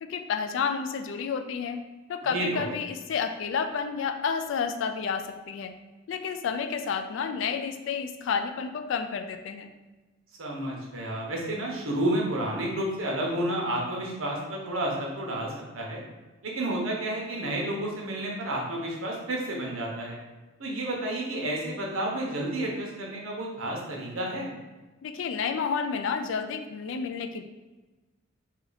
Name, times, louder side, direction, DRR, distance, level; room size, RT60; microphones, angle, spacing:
voice 1, 0.0-1.8 2.1-5.8 6.1-9.7 25.0-27.4, left 6 dB, 60° left, 7 dB, 0.3 m, -30 dB
voice 2, 2.2-2.7 10.4-15.5 15.7-16.0 16.4-20.2 20.6-24.5, right 1 dB, 75° right, -2 dB, 0.9 m, -31 dB
2.8 x 2.7 x 4.0 m, 1.2 s
head